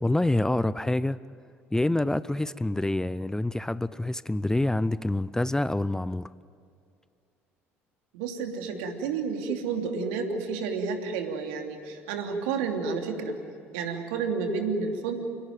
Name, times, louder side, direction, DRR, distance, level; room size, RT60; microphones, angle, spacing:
voice 1, 0.0-1.2 1.7-6.3, left 1 dB, 10° left, 18 dB, 0.5 m, -26 dB
voice 2, 8.1-13.4 13.7-15.2, right 5 dB, 70° right, 4 dB, 3.0 m, -30 dB
29.5 x 17.0 x 9.2 m, 2.4 s
figure-of-eight pair, 60°, 7 cm